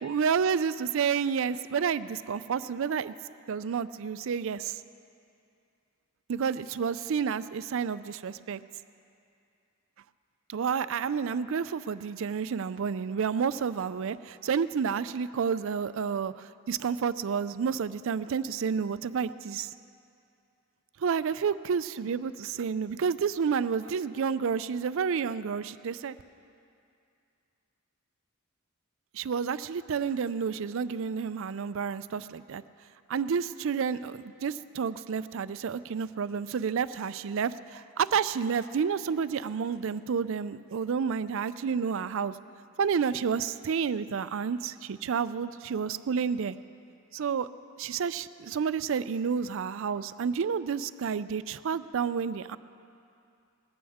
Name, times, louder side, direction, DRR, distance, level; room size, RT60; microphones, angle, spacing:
voice 1, 0.0-3.1 3.5-4.8 6.3-8.6 10.5-19.7 21.0-26.1 29.1-32.6 33.1-42.4 42.8-46.5 47.1-47.5 47.8-52.6, right 6 dB, 65° right, 15 dB, 0.4 m, -30 dB
20.0 x 15.0 x 3.6 m, 2.6 s
head